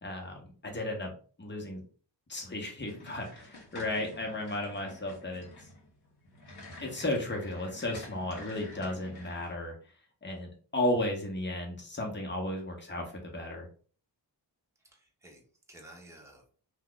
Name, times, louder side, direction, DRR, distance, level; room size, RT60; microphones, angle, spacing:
voice 1, 0.0-1.1 1.4-1.8 2.3-5.5 6.8-9.7 10.2-13.7, left 1 dB, 25° left, 1 dB, 1.1 m, -34 dB
sound 1, 2.9-9.5, left 1 dB, 60° left, 1.3 m, -49 dB
voice 2, 14.8-16.6, right 1 dB, 5° right, -1 dB, 1.0 m, -54 dB
2.6 x 2.3 x 3.9 m, 0.42 s
cardioid pair, 75°, 44 cm